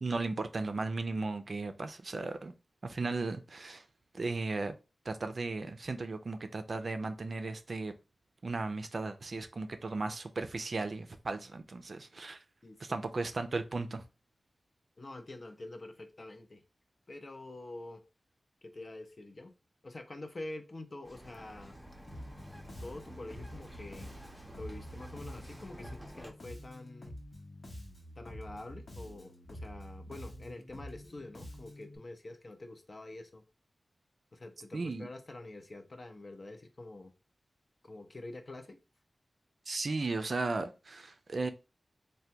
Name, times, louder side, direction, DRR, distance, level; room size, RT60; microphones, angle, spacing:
voice 1, 0.0-2.5 2.8-3.8 4.1-4.8 5.1-7.9 8.4-12.4 12.8-14.1 34.7-35.1 39.7-41.5, right 3 dB, 60° right, 0.4 m, -36 dB
voice 2, 12.6-13.0 15.0-16.6 17.1-18.0 18.6-19.5 19.8-21.7 22.8-24.1 24.5-27.1 28.2-33.4 34.3-37.1 37.8-38.8, left 2 dB, 45° left, 0.5 m, -46 dB
Bird vocalization bird call bird song, 21.0-26.3, equal, ahead, 0.6 m, -51 dB
Bass guitar, 22.1-32.0, equal, 75° left, 1.0 m, -48 dB
3.3 x 2.2 x 2.7 m
wide cardioid pair, 85°, 0 cm